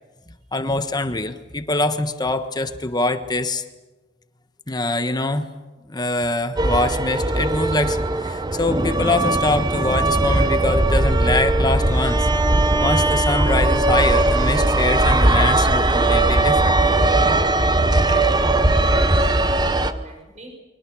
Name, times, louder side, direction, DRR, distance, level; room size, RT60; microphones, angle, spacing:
voice 1, 0.5-3.6 4.7-5.5 5.9-12.3 12.8-16.7, left 2 dB, 20° left, 9 dB, 1.3 m, -24 dB
sound 1, 6.6-19.9, right 2 dB, 25° right, 0.9 m, -19 dB
voice 2, 17.9-20.5, right 1 dB, 40° right, 3 dB, 5.7 m, -40 dB
29.5 x 24.0 x 6.3 m, 1.2 s
head